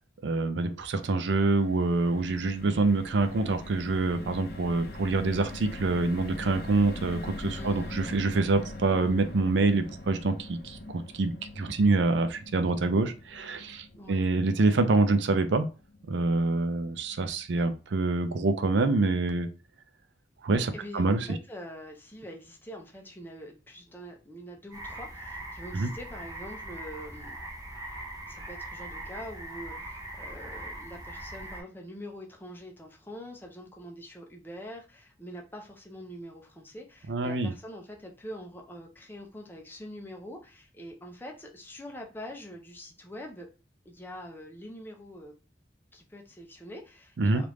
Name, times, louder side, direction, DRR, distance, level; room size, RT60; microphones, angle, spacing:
voice 1, 0.2-15.7 16.1-19.5 20.4-21.4 25.7-25.9 37.1-37.5 47.2-47.4, right 3 dB, 80° right, 0.5 m, -26 dB
sound 1, 1.0-17.3 17.7-17.8 18.1-18.3, left 2 dB, 55° left, 0.5 m, -43 dB
voice 2, 7.6-8.0 13.9-14.3 20.7-27.4 28.3-43.5 43.8-45.3 45.9-47.5, equal, 10° left, 0.6 m, -44 dB
sound 2, 24.7-31.6, right 1 dB, 20° right, 0.8 m, -41 dB
3.3 x 2.5 x 3.1 m
head